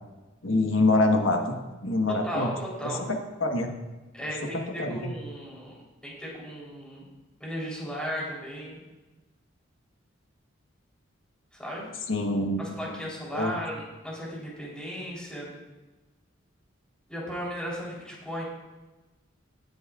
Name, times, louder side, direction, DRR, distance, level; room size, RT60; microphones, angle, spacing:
voice 1, 0.4-1.5 1.8-2.5 3.4-3.7 4.8-5.1 12.1-12.8 13.3-13.5, left 2 dB, 85° left, 3 dB, 1.3 m, -24 dB
voice 2, 2.1-3.1 4.1-5.8 6.0-7.1 7.4-8.8 11.5-11.9 12.6-15.5 17.1-18.4, equal, 5° left, -5 dB, 3.5 m, -36 dB
17.5 x 9.5 x 2.4 m, 1.1 s
head